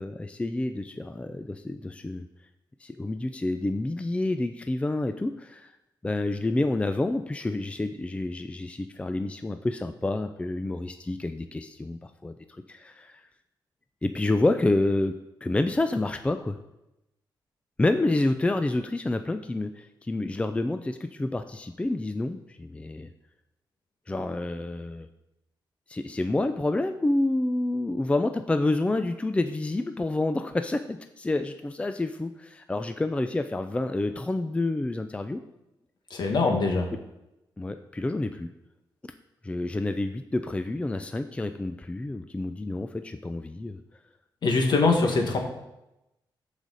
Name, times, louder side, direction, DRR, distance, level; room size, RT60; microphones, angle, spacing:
voice 1, 0.0-2.3 2.8-5.7 6.0-12.4 12.7-13.2 14.0-15.1 15.4-16.6 17.8-23.1 24.1-25.1 25.9-35.4 37.6-38.5 39.0-39.1 39.4-43.8, left 2 dB, 15° left, 8 dB, 0.4 m, -28 dB
voice 2, 36.1-36.9 44.4-45.4, left 3 dB, 65° left, 2 dB, 1.8 m, -22 dB
13.5 x 5.0 x 4.0 m, 0.91 s
cardioid pair, 95°, 8 cm